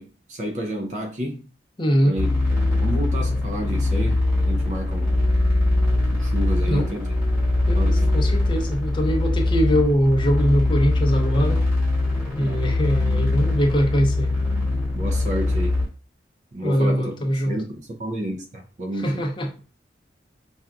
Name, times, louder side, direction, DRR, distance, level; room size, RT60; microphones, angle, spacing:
voice 1, 0.0-1.4 2.0-2.3 2.8-5.1 6.1-7.1 7.8-8.1 12.4-12.6 14.9-15.7 16.5-17.1 17.5-17.6 18.0-19.2, equal, 40° right, 0.5 m, -30 dB
voice 2, 1.8-2.1 6.7-7.0 7.7-11.6 12.3-14.3 16.6-17.6 19.0-19.5, equal, 25° left, 0.6 m, -22 dB
sound 1, 2.2-15.9, left 2 dB, 10° right, 1.4 m, -22 dB
5.6 x 2.3 x 2.4 m
head